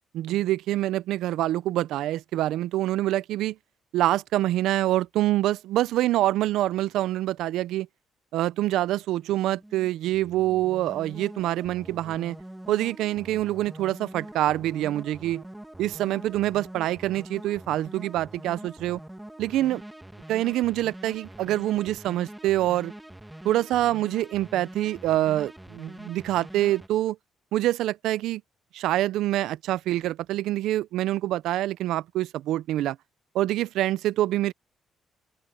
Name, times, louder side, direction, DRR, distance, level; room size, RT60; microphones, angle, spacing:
voice 1, 0.1-3.6 3.9-7.9 8.3-12.4 12.7-15.4 15.8-19.0 19.4-19.8 20.3-22.9 23.4-27.2 27.5-28.4 28.7-33.0 33.3-34.5, right 14 dB, 85° right, 0.5 m, -26 dB
sound 1, 9.2-26.9, right 1 dB, 5° right, 2.1 m, -44 dB
open air
cardioid pair, 90°, 0 cm